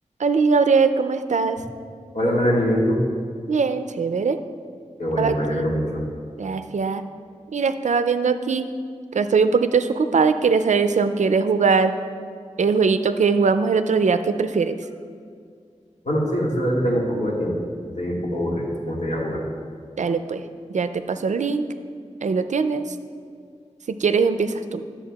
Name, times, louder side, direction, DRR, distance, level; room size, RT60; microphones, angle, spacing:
voice 1, 0.2-1.6 3.5-4.4 5.2-5.8 6.4-7.0 7.5-8.7 9.1-11.9 12.6-14.8 20.0-20.4 20.7-21.7 22.2-23.0 24.0-24.8, right 5 dB, 80° right, 10 dB, 0.4 m, -21 dB
voice 2, 2.1-3.0 5.0-6.0 16.0-17.5 18.0-19.4, equal, 75° left, -4 dB, 1.7 m, -23 dB
12.5 x 7.0 x 2.3 m, 2.2 s
wide cardioid pair, 65°, 12 cm